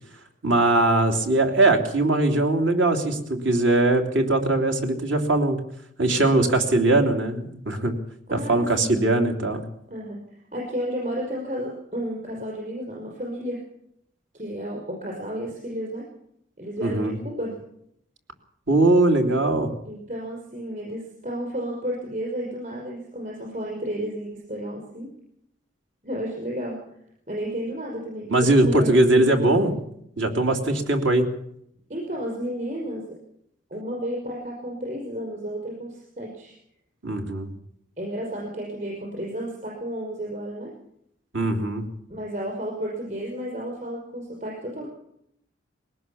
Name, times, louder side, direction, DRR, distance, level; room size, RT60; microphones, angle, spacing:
voice 1, 0.4-5.6 6.0-7.9 8.3-9.6 16.8-17.2 18.7-19.7 28.3-29.7 30.2-31.2 37.0-37.5 41.3-41.8, right 2 dB, 75° right, 5 dB, 3.1 m, -20 dB
voice 2, 8.3-8.9 9.9-13.6 14.3-16.1 16.6-17.6 19.9-25.1 26.0-26.8 27.3-29.7 31.9-33.2 33.7-36.6 38.0-40.7 42.1-44.9, equal, 40° right, -1 dB, 5.6 m, -32 dB
20.5 x 18.5 x 7.1 m, 0.73 s
head